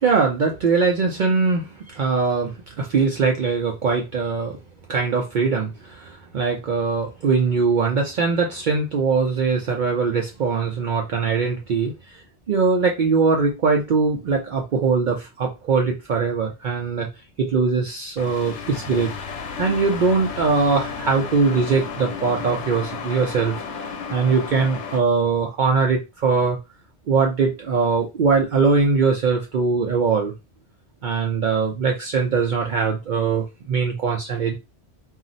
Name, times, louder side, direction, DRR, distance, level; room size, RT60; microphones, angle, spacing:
voice 1, 0.0-4.6 4.9-12.2 12.5-17.1 17.4-19.1 19.6-26.6 27.1-30.3 31.0-34.5, right 4 dB, 60° right, 1 dB, 0.5 m, -21 dB
sound 1, 18.2-25.0, left 5 dB, 85° left, 1.0 m, -33 dB
2.4 x 2.0 x 3.8 m, 0.26 s
omnidirectional pair, 1.2 m